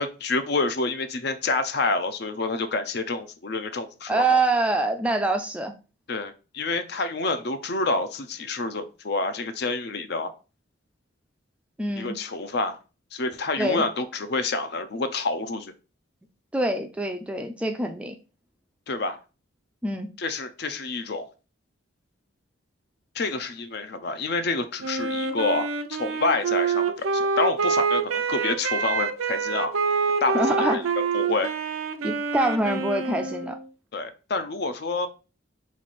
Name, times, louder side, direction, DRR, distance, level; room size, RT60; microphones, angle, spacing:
voice 1, 0.0-4.4 6.1-10.3 12.0-12.8 13.1-15.7 18.9-19.2 20.2-21.3 23.1-29.8 30.2-30.8 31.1-31.5 33.9-35.1, left 3 dB, 50° left, 10 dB, 0.5 m, -28 dB
voice 2, 4.1-5.7 11.8-12.1 13.6-13.8 16.5-18.1 19.8-20.1 30.3-30.9 32.0-33.6, right 2 dB, 5° right, 5 dB, 0.3 m, -25 dB
Wind instrument woodwind instrument, 24.8-33.7, right 5 dB, 85° right, 0.5 m, -26 dB
3.7 x 3.2 x 4.1 m, 0.33 s
head